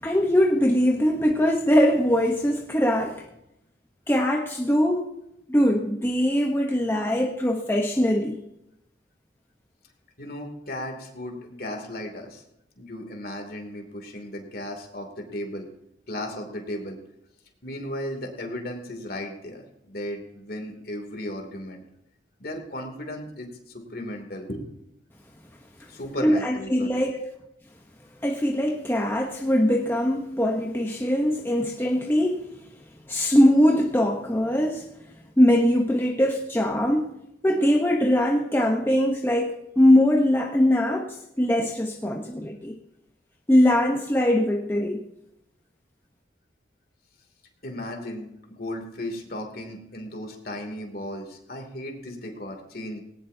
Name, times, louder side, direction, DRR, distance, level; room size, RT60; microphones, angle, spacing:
voice 1, 0.0-3.2 4.1-5.1 5.5-8.4 26.2-27.2 28.2-32.5 33.1-34.9 35.4-37.1 37.4-42.8 43.5-45.0, equal, 10° left, 0.9 m, -22 dB
voice 2, 10.2-12.4 12.8-15.7 16.1-17.0 17.6-21.8 22.4-24.6 25.9-27.3 47.6-53.0, left 1 dB, 50° left, 2.8 m, -35 dB
19.0 x 18.5 x 2.8 m
head